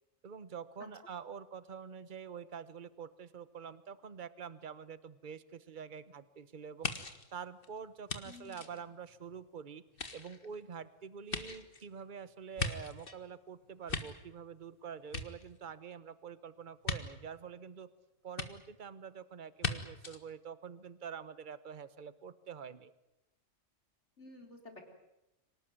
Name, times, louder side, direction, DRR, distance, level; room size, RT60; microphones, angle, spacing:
voice 1, 0.2-6.9 7.3-9.8 10.1-17.9 18.2-22.9, right 7 dB, 40° right, 15 dB, 1.2 m, -46 dB
sound 1, 6.8-9.4 9.9-13.2 13.6-14.7 15.0-15.9 16.8-17.0 18.4-18.5 19.6-19.7 20.0-20.2, left 3 dB, 50° left, 2.0 m, -39 dB
voice 2, 8.2-8.7 24.2-24.8, left 2 dB, 65° left, 3 dB, 4.5 m, -52 dB
26.0 x 18.5 x 9.4 m, 0.90 s
omnidirectional pair, 1.3 m